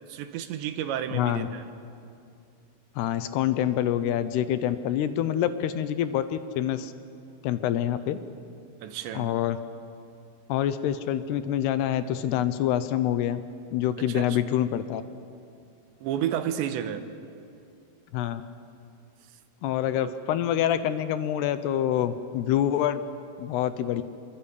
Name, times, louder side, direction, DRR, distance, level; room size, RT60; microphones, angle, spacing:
voice 1, 0.1-1.7 8.8-9.3 14.0-14.4 16.0-17.1, right 10 dB, 85° right, 9 dB, 3.4 m, -31 dB
voice 2, 1.1-1.5 3.0-6.9 7.4-8.2 9.2-9.6 10.5-13.4 13.7-15.0 18.1-18.4 19.6-23.0 23.4-24.0, left 11 dB, 75° left, 11 dB, 2.8 m, -26 dB
27.0 x 23.5 x 8.5 m, 2.5 s
omnidirectional pair, 5.0 m